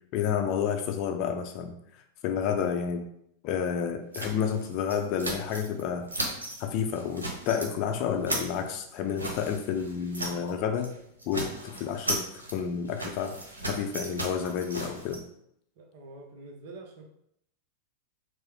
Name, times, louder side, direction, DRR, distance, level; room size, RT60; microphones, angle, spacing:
voice 1, 0.1-1.7 2.2-3.1 3.4-6.1 6.6-10.9 11.3-12.2 12.5-15.2, left 7 dB, 40° left, 5 dB, 0.5 m, -30 dB
sound 1, 4.1-5.8 6.1-6.6 6.9-7.7 8.0-10.5 10.8-10.9 11.2-15.2, right 2 dB, 75° right, 0.9 m, -36 dB
voice 2, 15.8-17.0, right 2 dB, 50° right, 3 dB, 0.8 m, -46 dB
4.7 x 2.1 x 4.5 m, 0.74 s
figure-of-eight pair, 90°, 0 cm